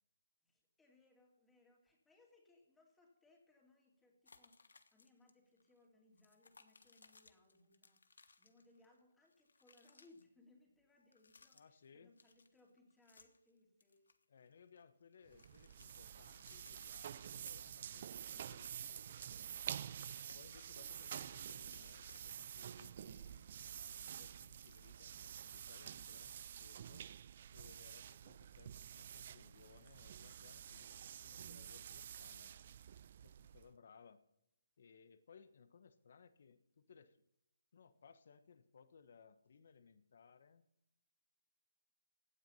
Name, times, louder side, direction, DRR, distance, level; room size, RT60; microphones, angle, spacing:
voice 1, 0.4-14.1, left 2 dB, 5° left, 0 dB, 2.7 m, -69 dB
sound 1, 4.3-5.3 5.6-5.7 6.1-9.0 9.2-10.2 11.0-11.9 12.2-13.5 13.8-14.8 15.1-18.0 18.3-22.6, left 4 dB, 85° left, 1.4 m, -66 dB
voice 2, 11.5-12.1 14.3-19.9 20.3-27.1 27.5-32.5 33.2-34.2 34.8-37.2 37.7-40.6, left 6 dB, 60° left, 12 dB, 1.2 m, -64 dB
sound 2, 15.3-33.7, right 9 dB, 45° right, 0.4 m, -49 dB
16.5 x 9.3 x 5.7 m, 0.80 s
hypercardioid pair, 160°, 0 cm